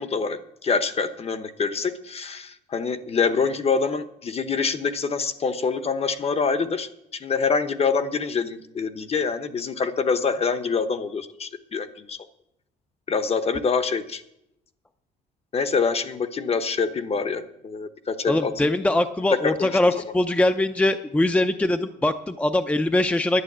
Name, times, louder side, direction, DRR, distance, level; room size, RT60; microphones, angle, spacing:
voice 1, 0.0-12.2 13.1-14.2 15.5-18.5 19.3-20.0, left 5 dB, 35° left, 11 dB, 1.0 m, -25 dB
voice 2, 18.3-23.4, left 1 dB, 10° left, 8 dB, 0.6 m, -22 dB
11.5 x 8.9 x 7.4 m, 0.80 s
cardioid pair, 110°, 17 cm